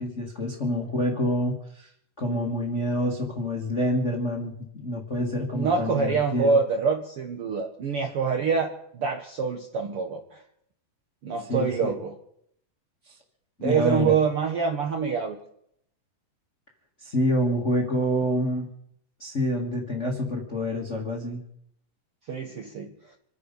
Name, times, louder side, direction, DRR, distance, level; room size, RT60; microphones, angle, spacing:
voice 1, 0.0-1.9 2.2-6.6 11.5-11.9 13.1-13.2 13.6-14.1 17.0-18.7 19.2-21.4, equal, 30° left, 0 dB, 1.3 m, -27 dB
voice 2, 5.5-10.4 11.2-12.1 13.6-15.4 22.3-22.9, right 5 dB, 60° right, 3 dB, 1.5 m, -25 dB
26.5 x 9.8 x 5.3 m, 0.71 s
omnidirectional pair, 3.9 m